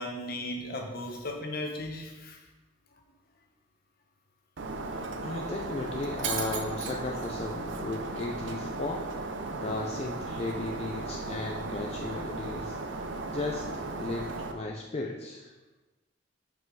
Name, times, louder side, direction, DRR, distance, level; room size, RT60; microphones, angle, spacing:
voice 1, 0.0-2.4, left 1 dB, 55° left, 2 dB, 1.0 m, -36 dB
Shatter, 4.6-14.5, right 3 dB, 85° right, 0.6 m, -36 dB
voice 2, 5.2-9.0 9.6-12.8 13.3-15.5, left 2 dB, 35° left, 0 dB, 0.5 m, -35 dB
5.6 x 5.1 x 4.6 m, 1.2 s
head